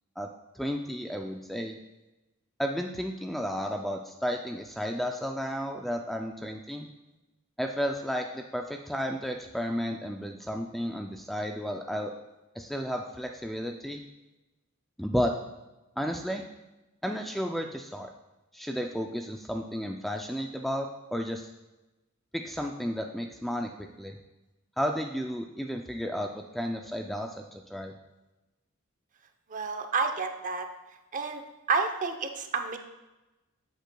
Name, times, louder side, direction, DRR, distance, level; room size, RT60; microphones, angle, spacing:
voice 1, 0.5-1.8 2.6-6.9 7.6-12.1 12.6-14.0 15.0-15.3 16.0-16.4 17.0-18.1 18.5-21.5 22.3-24.2 24.8-27.9, equal, ahead, 3 dB, 0.3 m, -33 dB
voice 2, 29.5-30.7 31.1-31.4 31.7-32.8, right 4 dB, 40° right, 6 dB, 0.7 m, -29 dB
10.0 x 8.1 x 2.3 m, 1.0 s
head